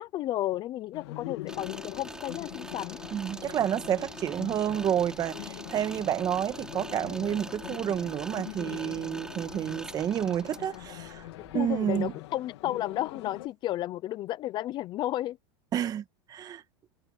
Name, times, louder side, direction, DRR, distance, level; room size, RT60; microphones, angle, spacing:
voice 1, 0.0-3.0 11.5-15.4, left 14 dB, 30° left, 0.7 m, -32 dB
sound 1, 0.9-13.5, left 18 dB, 75° left, 2.0 m, -43 dB
sound 2, 1.5-12.1, right 2 dB, 5° right, 3.8 m, -44 dB
voice 2, 3.1-11.2 11.5-12.1 15.7-16.6, right 10 dB, 25° right, 1.7 m, -30 dB
supercardioid pair, 150°, 14 cm